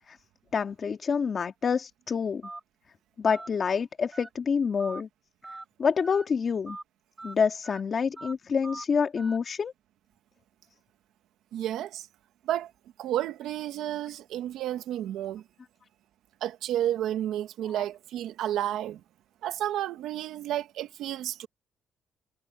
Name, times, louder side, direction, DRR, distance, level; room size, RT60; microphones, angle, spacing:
voice 1, 0.5-2.4 3.2-5.1 5.8-6.8 7.2-9.7, left 6 dB, 45° left, 2.1 m, -27 dB
Telephone, 2.4-2.6 3.3-3.5 4.1-4.3 4.8-5.0 5.4-5.6 6.0-6.3 6.7-6.8 7.2-7.3 7.6-7.8 8.2-8.3 8.6-8.8 9.2-9.4, right 2 dB, 20° right, 5.1 m, -42 dB
voice 2, 11.5-12.1 12.4-12.7 13.0-15.4 16.4-19.0 19.4-21.5, right 12 dB, 85° right, 1.8 m, -31 dB
cardioid pair, 90°, 0 cm